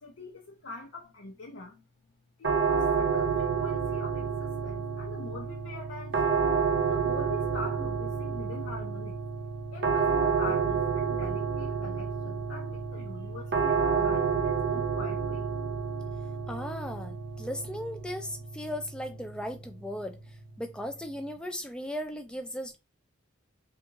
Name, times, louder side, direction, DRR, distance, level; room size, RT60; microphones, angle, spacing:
voice 1, 0.0-1.8 2.4-6.4 6.9-9.2 9.7-15.5, left 2 dB, 80° left, 0.6 m, -43 dB
sound 1, 2.4-21.3, right 5 dB, 55° right, 0.6 m, -30 dB
voice 2, 16.5-22.8, equal, 5° left, 0.4 m, -37 dB
3.5 x 2.4 x 2.9 m
head